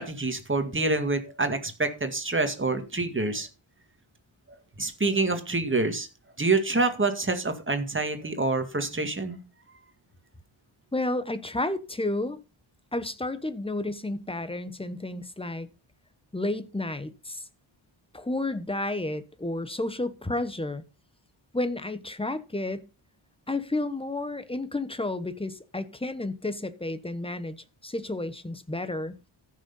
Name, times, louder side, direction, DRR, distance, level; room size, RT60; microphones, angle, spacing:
voice 1, 0.0-3.5 4.8-6.1 6.4-9.4, right 3 dB, 25° right, 2.0 m, -27 dB
voice 2, 10.9-12.4 12.9-15.7 16.3-17.4 18.1-20.8 21.5-22.9 23.5-29.1, left 2 dB, 10° left, 1.1 m, -31 dB
14.0 x 6.7 x 5.4 m
wide cardioid pair, 150°, 47 cm